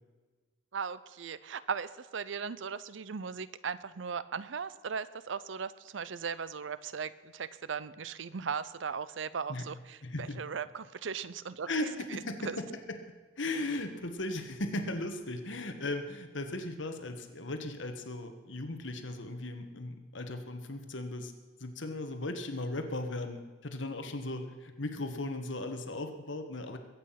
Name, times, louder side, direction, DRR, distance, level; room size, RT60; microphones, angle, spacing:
voice 1, 0.7-11.7 12.1-12.6, right 6 dB, 75° right, 16 dB, 0.6 m, -38 dB
voice 2, 10.0-10.4 11.7-13.0 13.4-21.3 21.6-26.8, left 2 dB, 70° left, 6 dB, 1.5 m, -37 dB
22.0 x 8.8 x 5.9 m, 1.3 s
head